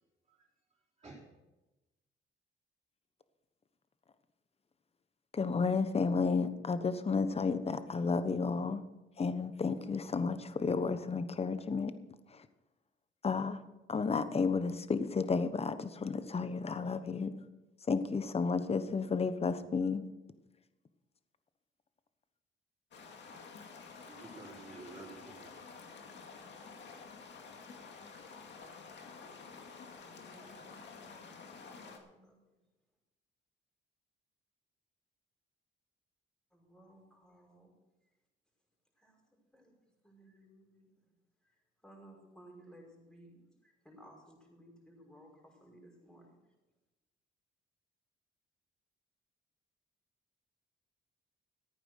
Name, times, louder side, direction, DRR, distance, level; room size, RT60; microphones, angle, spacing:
voice 1, 5.3-8.8 9.2-11.9 12.3-12.4 13.2-13.6 13.9-17.3 17.9-20.0, left 4 dB, 30° left, 12 dB, 1.1 m, -32 dB
sound 1, 22.9-32.0, left 4 dB, 65° left, 2.3 m, -50 dB
voice 2, 24.0-25.7, right 3 dB, 25° right, -5 dB, 4.0 m, -51 dB
voice 3, 29.9-32.4 36.5-37.7 39.0-39.2 39.5-39.7 40.0-40.9 41.8-46.3, right 1 dB, 5° left, -1 dB, 5.5 m, -59 dB
14.5 x 9.1 x 6.5 m, 1.0 s
cardioid pair, 90°, 20 cm